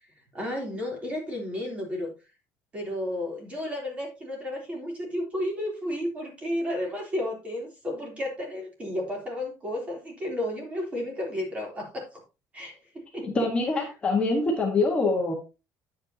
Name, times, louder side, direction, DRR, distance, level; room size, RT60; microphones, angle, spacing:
voice 1, 0.3-2.1 2.7-12.2 12.5-13.3 13.8-13.9, left 1 dB, 20° right, 0 dB, 3.4 m, -32 dB
voice 2, 13.2-15.3, left 3 dB, 20° left, -1 dB, 1.5 m, -25 dB
9.1 x 8.7 x 2.8 m, 0.28 s
cardioid pair, 180°, 6 cm